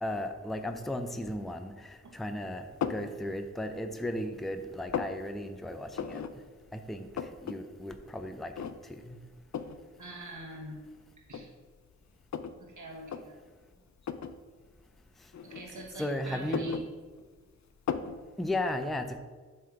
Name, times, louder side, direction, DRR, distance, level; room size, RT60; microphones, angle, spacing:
voice 1, 0.0-6.2 6.7-9.2 16.0-16.8 18.4-19.2, left 1 dB, ahead, 7 dB, 0.5 m, -35 dB
sound 1, 2.8-3.1 3.7-4.3 4.6-5.2 5.9-6.3 6.6-6.7 6.9-7.6 7.9-8.0 8.5-9.0 9.5-9.8 10.6-10.7 11.3-12.6 13.0-13.2 14.0-14.4 15.3-16.0 16.3-17.4 17.9-18.2, left 7 dB, 65° left, 0.4 m, -35 dB
voice 2, 10.0-10.8 11.3-11.5 12.6-13.3 15.4-16.8, right 1 dB, 75° right, -1 dB, 1.3 m, -44 dB
7.6 x 3.3 x 5.9 m, 1.4 s
wide cardioid pair, 50°, 30 cm